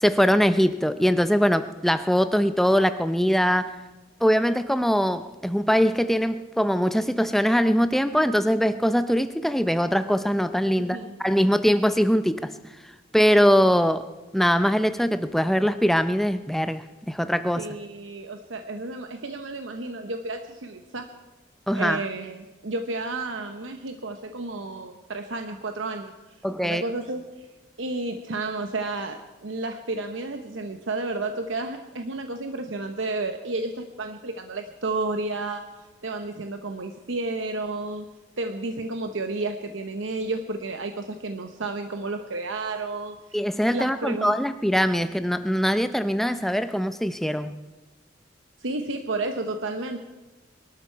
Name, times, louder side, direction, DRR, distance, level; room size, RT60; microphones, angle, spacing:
voice 1, 0.0-3.7 4.2-12.5 13.1-17.7 21.7-22.1 26.4-26.8 43.3-47.6, equal, ahead, 11 dB, 0.5 m, -22 dB
voice 2, 17.6-21.1 21.7-26.1 26.6-27.5 27.8-35.6 36.0-38.1 38.4-43.2 43.7-44.4 48.6-50.0, right 2 dB, 85° right, 6 dB, 0.9 m, -31 dB
23.0 x 12.5 x 4.6 m, 1.2 s
head